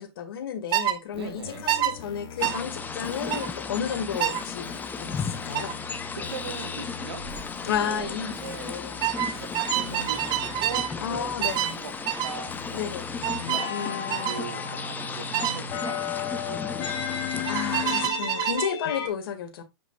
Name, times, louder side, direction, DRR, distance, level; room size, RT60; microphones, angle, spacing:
voice 1, 0.0-5.8 7.6-9.5 11.0-11.8 12.7-13.1 13.7-14.4 17.5-19.6, left 8 dB, 65° left, 2.1 m, -32 dB
sound 1, 0.7-1.0 1.7-1.9 2.4-2.6 3.3-3.5 4.2-4.4 5.5-5.7 7.2-7.4 7.7-8.1 9.0-10.9 11.4-11.8 12.1-12.4 13.2-13.7 14.1-14.4 15.3-15.6 17.5-18.7, right 13 dB, 30° right, 0.9 m, -27 dB
sound 2, 1.1-19.1, left 8 dB, 40° left, 1.7 m, -37 dB
voice 2, 1.1-1.6 6.1-7.2 7.5-8.8 9.3-12.9 13.2-17.0, right 5 dB, 80° right, 1.9 m, -40 dB
sound 3, 2.4-18.1, left 5 dB, 15° left, 0.9 m, -35 dB
8.0 x 6.0 x 2.4 m
hypercardioid pair, 115°, 13 cm